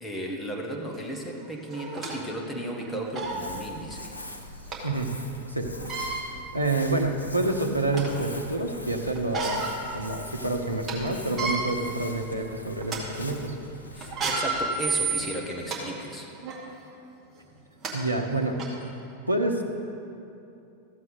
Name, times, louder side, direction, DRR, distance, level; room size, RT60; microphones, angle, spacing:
voice 1, 0.0-4.2 13.9-16.3, right 1 dB, 10° left, 0 dB, 1.5 m, -35 dB
sound 1, 1.0-1.1 1.7-2.2 2.7-2.8 3.1-3.4 4.7-4.8 5.7-6.2 6.9-7.0 7.5-8.2 9.1-9.8 10.2-10.3 10.7-10.9 11.3-11.6 12.2-12.4 12.8-13.0 14.0-15.8 16.4-16.6 17.4-17.5 17.8-17.9 18.6-18.7, right 4 dB, 25° right, 2.1 m, -30 dB
Crumpling crinkling, 3.1-15.6, left 1 dB, 85° left, 0.7 m, -43 dB
voice 2, 4.8-5.2 5.5-5.7 6.5-9.6 9.9-13.6 17.9-18.9 19.3-19.6, right 2 dB, 90° right, 3 dB, 0.8 m, -28 dB
14.0 x 7.5 x 4.0 m, 2.7 s
figure-of-eight pair, 90°, 0 cm